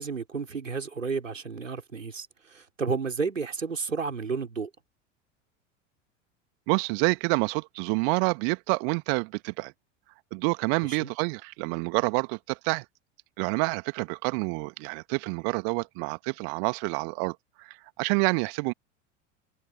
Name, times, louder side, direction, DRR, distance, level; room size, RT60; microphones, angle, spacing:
voice 1, 0.0-4.7 10.8-11.1, right 5 dB, 80° right, 4.5 m, -32 dB
voice 2, 6.7-9.7 10.3-12.8 13.4-18.7, right 40 dB or more, 50° right, 1.6 m, -28 dB
figure-of-eight pair, 80°, 38 cm